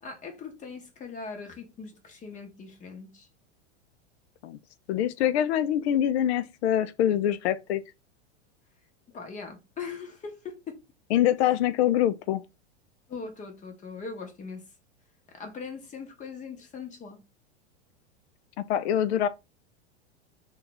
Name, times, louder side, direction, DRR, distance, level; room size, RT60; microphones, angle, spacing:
voice 1, 0.0-3.3 9.1-10.8 13.1-14.6 15.3-17.2, left 5 dB, 20° left, 0.8 m, -40 dB
voice 2, 4.9-7.8 11.1-12.4 18.6-19.3, left 11 dB, 65° left, 0.5 m, -24 dB
2.6 x 2.3 x 3.9 m
hypercardioid pair, 125°, 35 cm